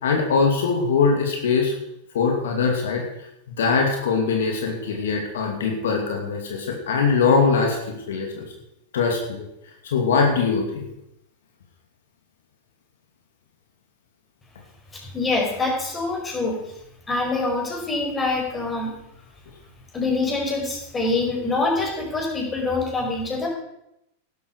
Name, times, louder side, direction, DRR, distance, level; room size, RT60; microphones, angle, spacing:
voice 1, 0.0-1.7 2.1-3.3 3.6-8.5 8.9-9.5 9.8-10.9, left 5 dB, 75° left, 2 dB, 2.6 m, -22 dB
voice 2, 15.0-16.6 17.1-19.0 19.9-23.5, left 3 dB, 15° left, 0 dB, 5.2 m, -25 dB
12.0 x 12.0 x 4.8 m, 0.81 s
hypercardioid pair, 105°, 0 cm